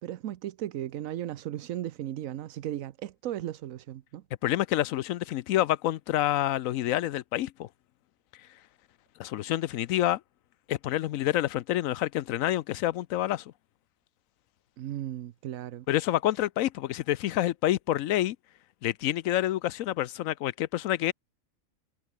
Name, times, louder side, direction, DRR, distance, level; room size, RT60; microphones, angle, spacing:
voice 1, 0.0-4.2 14.8-15.9, right 12 dB, 80° right, 1.1 m, -36 dB
voice 2, 4.4-7.7 9.2-10.2 10.7-13.4 15.9-18.4 18.8-21.1, left 13 dB, 80° left, 1.0 m, -28 dB
omnidirectional pair, 1.4 m